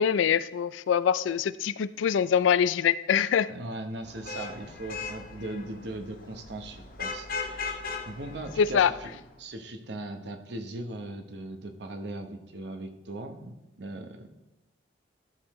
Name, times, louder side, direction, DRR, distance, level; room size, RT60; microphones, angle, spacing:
voice 1, 0.0-3.5 8.6-8.9, left 8 dB, 80° left, 0.3 m, -24 dB
voice 2, 3.5-7.8 8.1-9.1 9.4-14.3, right 2 dB, 60° right, 0.9 m, -39 dB
Vehicle horn car horn honking / Traffic noise roadway noise, 4.0-9.3, left 4 dB, 45° left, 0.8 m, -38 dB
13.5 x 6.5 x 3.0 m
head